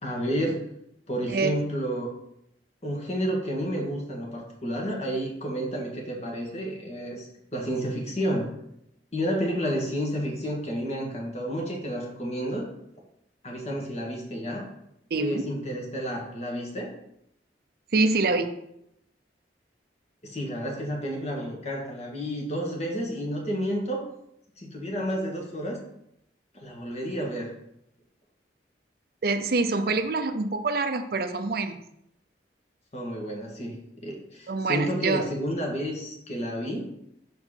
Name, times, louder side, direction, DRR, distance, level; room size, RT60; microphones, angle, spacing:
voice 1, 0.0-0.6 1.1-2.1 2.8-7.2 7.5-8.5 9.1-12.7 13.4-14.7 15.2-16.9 20.2-24.1 24.6-25.8 26.5-27.5 32.9-36.9, equal, 40° left, -1 dB, 1.7 m, -30 dB
voice 2, 1.3-1.6 15.1-15.5 17.9-18.5 29.2-31.8 34.5-35.2, right 3 dB, 55° right, 8 dB, 0.6 m, -25 dB
6.3 x 4.5 x 5.7 m, 0.79 s
head